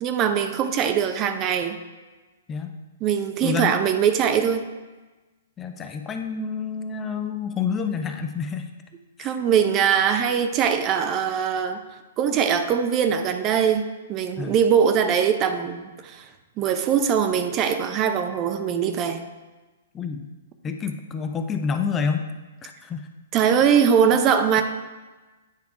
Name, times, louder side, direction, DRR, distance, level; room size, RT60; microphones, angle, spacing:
voice 1, 0.0-1.8 3.0-4.7 9.2-11.8 12.2-16.3 16.6-19.2 23.3-24.6, right 7 dB, 30° right, 7 dB, 0.6 m, -22 dB
voice 2, 3.4-3.7 5.6-8.7 9.2-9.3 14.4-14.5 19.9-20.3 20.6-22.3 22.6-23.1, left 6 dB, 20° left, 6 dB, 0.5 m, -28 dB
9.1 x 3.5 x 4.6 m, 1.2 s
hypercardioid pair, 120°, 0 cm